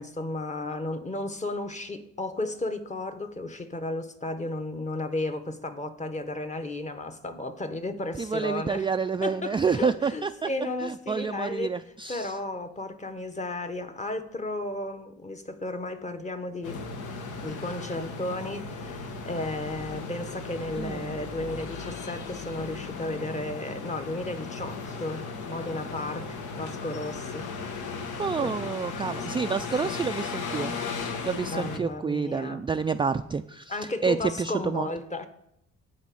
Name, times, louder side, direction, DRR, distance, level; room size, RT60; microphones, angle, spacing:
voice 1, 0.0-8.9 9.2-11.7 12.1-16.8 17.4-27.5 28.4-28.5 29.8-30.0 31.4-32.6 33.7-35.3, left 2 dB, 25° left, 1.0 m, -34 dB
voice 2, 8.2-10.5 10.8-12.4 20.8-21.2 28.2-34.9, right 5 dB, 15° right, 0.3 m, -29 dB
sound 1, 16.6-31.8, left 4 dB, 75° left, 1.2 m, -36 dB
10.5 x 4.2 x 7.7 m
cardioid pair, 90°, 30 cm